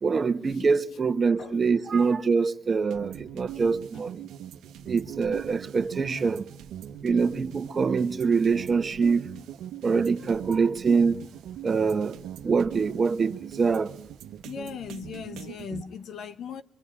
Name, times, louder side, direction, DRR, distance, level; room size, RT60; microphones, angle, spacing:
voice 1, 0.0-4.3 4.8-6.4 7.0-9.3 9.8-11.2 11.6-12.2 12.4-13.9, right 5 dB, 40° right, 1.5 m, -24 dB
sound 1, 2.9-15.8, right 10 dB, 85° right, 1.2 m, -41 dB
voice 2, 14.4-16.6, left 7 dB, 70° left, 1.1 m, -38 dB
24.0 x 23.5 x 10.0 m
cardioid pair, 90°, 0 cm